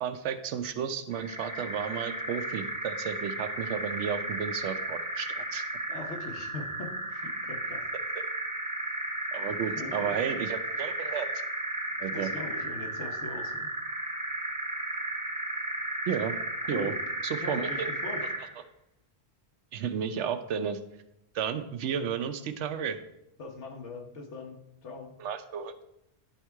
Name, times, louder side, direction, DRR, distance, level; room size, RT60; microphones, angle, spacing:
voice 1, 0.0-5.6 9.3-11.3 12.0-12.3 16.1-16.3 16.7-16.9 17.2-17.9 19.7-20.8 21.3-23.0 25.2-25.8, right 7 dB, 85° right, 9 dB, 0.9 m, -32 dB
sound 1, 1.1-18.5, right 1 dB, 5° right, 0.8 m, -34 dB
voice 2, 5.9-7.8 9.8-10.2 12.1-13.7 16.7-16.9 17.4-18.3 23.4-25.1, left 3 dB, 80° left, 2 dB, 1.4 m, -41 dB
10.5 x 3.6 x 4.6 m, 0.83 s
omnidirectional pair, 1.2 m